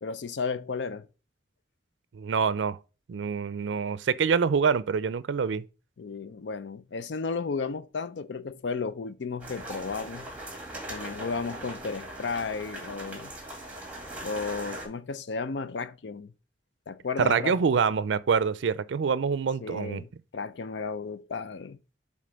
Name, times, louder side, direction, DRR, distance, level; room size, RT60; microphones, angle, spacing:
voice 1, 0.0-1.1 6.0-10.3 10.9-13.3 14.2-16.3 16.9-17.6 19.6-21.8, left 4 dB, 65° left, 0.5 m, -33 dB
voice 2, 2.1-2.8 3.1-5.6 17.2-20.0, right 6 dB, 75° right, 0.4 m, -26 dB
sound 1, 9.4-14.9, right 1 dB, 10° right, 2.2 m, -40 dB
7.6 x 3.7 x 5.0 m
head